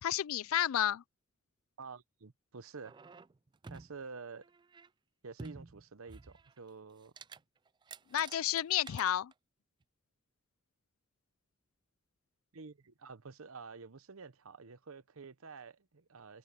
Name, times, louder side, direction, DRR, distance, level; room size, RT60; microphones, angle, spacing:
voice 1, 0.0-1.0 8.1-9.3, left 11 dB, 80° left, 0.4 m, -31 dB
voice 2, 1.8-3.0 3.7-4.5 5.2-7.1 12.5-16.4, right 4 dB, 80° right, 0.9 m, -49 dB
sound 1, 2.8-4.0 4.4-4.9 5.4-6.7 7.0-7.4 7.7-9.3 9.8-9.9, right 4 dB, 20° right, 0.3 m, -51 dB
open air
head